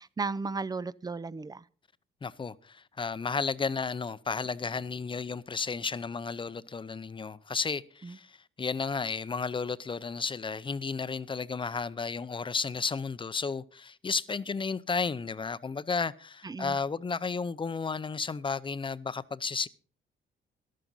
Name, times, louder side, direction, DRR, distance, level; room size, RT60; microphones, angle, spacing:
voice 1, 0.0-1.6 8.0-8.2 16.4-16.8, right 4 dB, 20° right, 0.5 m, -35 dB
voice 2, 2.2-19.7, left 5 dB, 25° left, 0.7 m, -33 dB
14.0 x 11.5 x 4.0 m
cardioid pair, 90°, 20 cm